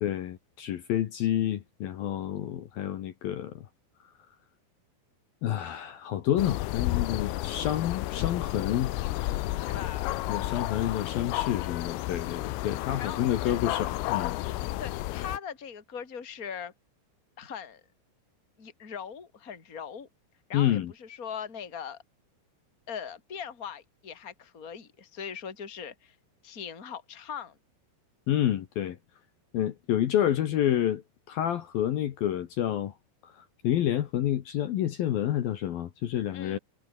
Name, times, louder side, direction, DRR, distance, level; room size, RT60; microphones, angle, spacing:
voice 1, 0.0-3.7 5.4-8.9 10.3-14.3 20.5-20.9 28.3-29.0 29.5-31.0 31.3-32.9 33.2-33.3 33.6-36.6, left 11 dB, 65° left, 2.5 m, -29 dB
sound 1, 6.4-15.4, left 17 dB, 85° left, 3.8 m, -32 dB
voice 2, 9.6-10.1 13.0-13.6 14.8-16.7 17.4-17.8 18.6-20.1 20.5-22.0 22.9-26.1 26.4-27.6 36.3-36.6, left 7 dB, 20° left, 3.2 m, -40 dB
omnidirectional pair, 5.8 m